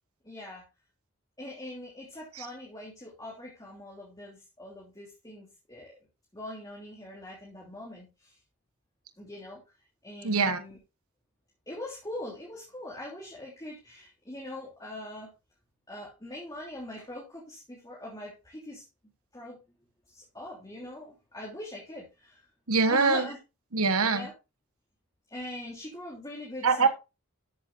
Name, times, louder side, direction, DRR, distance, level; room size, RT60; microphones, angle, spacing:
voice 1, 0.2-0.6 1.4-6.0 6.3-8.4 9.2-9.6 10.0-10.8 11.7-15.3 15.9-18.8 19.3-19.6 20.1-22.5 22.9-23.4 24.1-24.3 25.3-26.9, left 1 dB, 15° left, -4 dB, 3.2 m, -42 dB
voice 2, 10.2-10.6 22.7-23.2 23.7-24.3 26.6-26.9, right 4 dB, 80° right, 9 dB, 1.3 m, -23 dB
13.0 x 7.8 x 2.7 m, 0.26 s
head